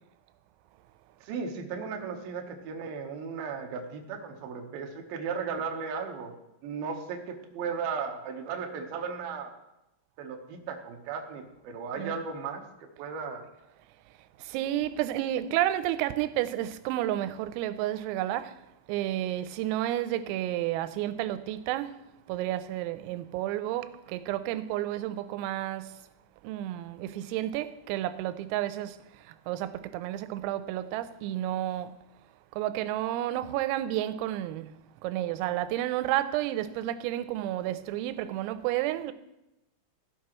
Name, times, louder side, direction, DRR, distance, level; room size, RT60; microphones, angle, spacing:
voice 1, 1.2-6.3 6.6-9.5 10.2-13.4, right 5 dB, 75° right, 2.2 m, -36 dB
voice 2, 14.5-18.4 18.9-21.9 22.3-23.9 24.1-25.9 26.5-28.9 29.5-31.9 32.6-34.7 35.0-39.1, right 13 dB, 90° right, 3.3 m, -31 dB
16.0 x 11.0 x 3.1 m
omnidirectional pair, 5.9 m